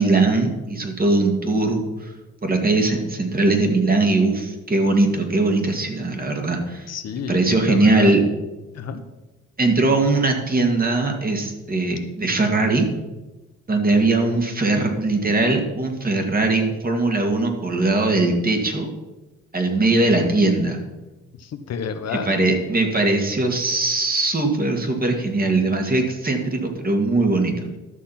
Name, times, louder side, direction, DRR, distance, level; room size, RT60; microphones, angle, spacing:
voice 1, 0.0-2.1 2.4-6.9 7.3-8.2 9.6-12.9 13.7-18.9 19.5-20.8 22.1-27.7, right 2 dB, 30° right, 3 dB, 2.3 m, -20 dB
voice 2, 6.9-8.1 8.7-9.0 21.4-22.4, left 6 dB, 60° left, 8 dB, 1.0 m, -30 dB
12.5 x 6.5 x 5.9 m, 1.1 s
cardioid pair, 90°, 30 cm